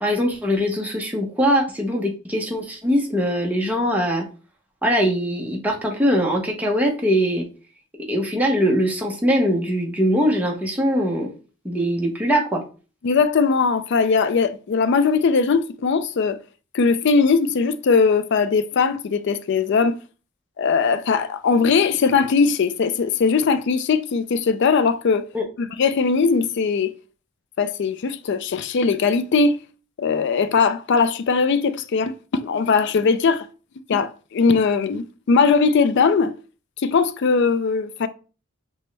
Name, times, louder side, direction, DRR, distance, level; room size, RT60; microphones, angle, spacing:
voice 1, 0.0-4.3 4.8-7.4 8.1-11.3 11.6-12.6 25.3-25.4, equal, 5° right, 0.7 m, -21 dB
voice 2, 13.0-16.4 16.7-20.0 20.6-25.3 25.6-26.9 27.6-29.6 30.0-33.5 33.9-36.3 36.8-38.1, left 5 dB, 55° left, 0.3 m, -20 dB
5.9 x 2.1 x 3.2 m
head